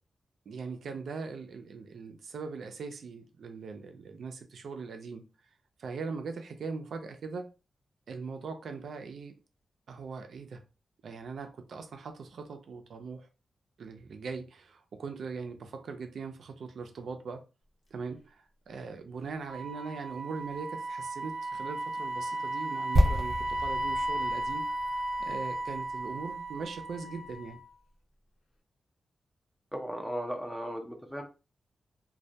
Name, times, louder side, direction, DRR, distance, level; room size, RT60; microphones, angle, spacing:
voice 1, 0.5-5.2 5.8-7.5 8.1-9.3 9.9-10.6 11.0-13.3 13.8-17.4 17.9-24.7 25.2-27.6, right 4 dB, 75° right, 0.4 m, -40 dB
Wind instrument woodwind instrument, 19.4-27.7, right 1 dB, 60° left, 0.6 m, -35 dB
sound 1, 22.9-26.9 27.1-27.3, equal, 25° right, 0.8 m, -30 dB
voice 2, 29.7-31.2, equal, ahead, 0.4 m, -36 dB
2.2 x 2.1 x 2.7 m
wide cardioid pair, 145°, 0 cm